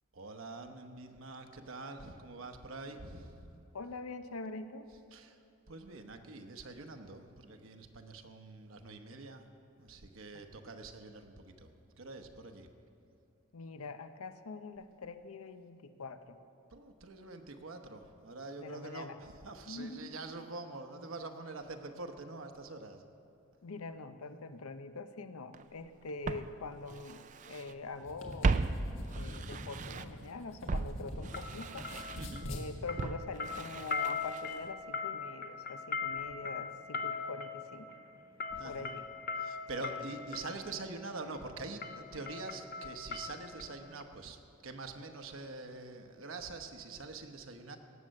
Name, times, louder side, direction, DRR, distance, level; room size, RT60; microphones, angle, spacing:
voice 1, 0.1-3.5 5.1-5.4 5.7-9.5 9.8-11.7 12.0-12.7 16.7-23.0 32.2-32.5 38.5-38.9 39.4-47.8, right 3 dB, 70° right, 6 dB, 0.9 m, -45 dB
voice 2, 3.7-4.9 10.3-10.4 13.5-16.4 18.6-19.2 19.7-20.2 23.6-28.6 29.1-31.9 32.5-37.9 38.6-39.1 39.8-40.1, left 3 dB, 85° left, 11 dB, 0.7 m, -44 dB
Walk footsteps, 25.5-25.6 26.3-27.7 28.0-30.3 30.7-34.7 35.0-35.1, right 4 dB, 35° right, 0.3 m, -37 dB
sound 1, 27.9-31.5 31.8-32.7, equal, 65° left, 1.7 m, -44 dB
sound 2, 29.4-29.6 31.3-32.6 32.9-40.6 41.3-41.5 41.8-43.7 44.0-44.1, left 5 dB, 45° left, 0.6 m, -40 dB
18.0 x 7.5 x 6.5 m, 2.7 s
head